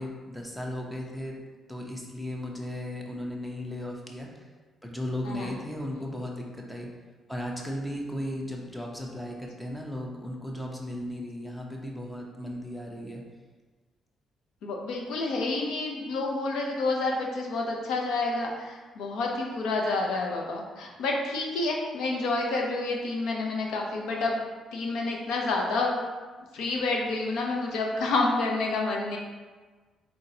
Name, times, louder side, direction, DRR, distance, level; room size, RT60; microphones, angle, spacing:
voice 1, 0.0-1.4 1.7-4.5 4.8-6.9 7.3-13.2, left 1 dB, 5° left, -1 dB, 0.8 m, -36 dB
voice 2, 14.6-24.4 24.7-26.0 26.5-29.2, left 3 dB, 85° left, 0 dB, 0.7 m, -29 dB
4.0 x 3.9 x 2.8 m, 1.4 s
cardioid pair, 90°, 0 cm